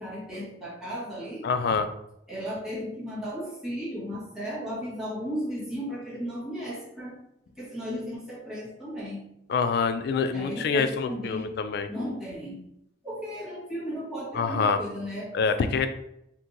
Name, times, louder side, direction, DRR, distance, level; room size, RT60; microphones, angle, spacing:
voice 1, 0.0-1.5 2.3-7.2 7.5-9.2 10.3-11.5 11.9-12.7 13.0-15.8, equal, 5° right, -9 dB, 1.3 m, -35 dB
voice 2, 1.4-1.9 9.5-11.9 14.3-14.8 15.3-15.9, left 5 dB, 60° left, 9 dB, 0.3 m, -26 dB
2.8 x 2.6 x 3.7 m, 0.78 s
head